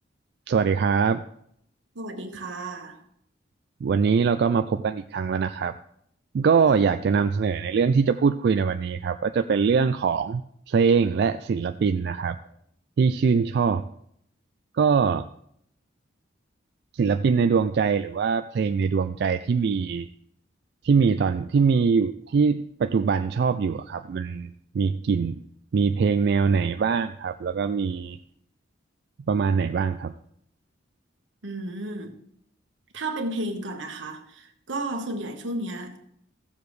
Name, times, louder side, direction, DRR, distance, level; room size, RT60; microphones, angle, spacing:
voice 1, 0.5-1.2 3.8-5.8 6.3-10.4 10.7-12.4 13.0-13.8 14.7-15.3 16.9-20.1 20.8-25.4 25.7-28.2 29.3-30.1, right 5 dB, 60° right, 0.3 m, -23 dB
voice 2, 1.9-3.0 31.4-32.1 32.9-36.0, right 2 dB, 85° right, 1.3 m, -33 dB
15.5 x 6.9 x 3.2 m
head